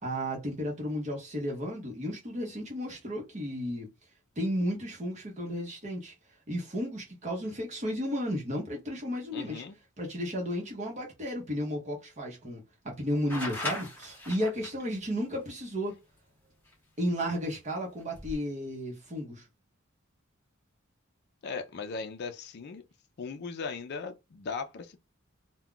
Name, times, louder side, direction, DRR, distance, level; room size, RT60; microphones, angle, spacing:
voice 1, 0.0-3.9 4.4-6.1 6.5-9.6 10.0-16.0 17.0-19.5, equal, 35° right, 0.8 m, -33 dB
voice 2, 9.3-9.8 21.4-22.8 23.2-25.0, left 5 dB, 50° left, 0.4 m, -38 dB
sound 1, 13.3-14.8 16.7-16.8 18.0-18.4, left 1 dB, 10° left, 0.9 m, -37 dB
2.3 x 2.1 x 3.6 m
head